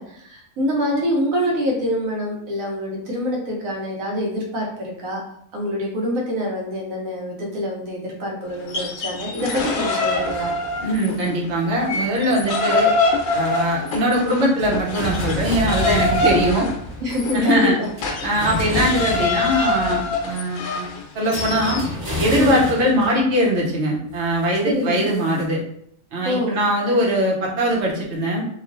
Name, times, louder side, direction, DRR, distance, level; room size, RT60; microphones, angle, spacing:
voice 1, 0.0-5.2 5.5-10.5 17.0-17.9 22.4-22.6 24.6-25.1 26.2-26.6, equal, 90° right, -1 dB, 1.3 m, -25 dB
sound 1, 8.6-11.3 11.6-21.9, left 3 dB, 80° left, 1.0 m, -24 dB
sound 2, 10.1-11.5 12.8-13.2 13.5-13.6 14.6-20.3 21.3-23.7 24.1-25.4, equal, 20° right, 0.7 m, -30 dB
voice 2, 10.8-12.9 13.3-16.7 17.3-17.8 18.2-20.9 21.1-21.8 22.2-25.6 26.1-28.4, equal, 60° right, -3 dB, 1.0 m, -21 dB
3.0 x 2.4 x 2.5 m, 0.69 s
omnidirectional pair, 1.4 m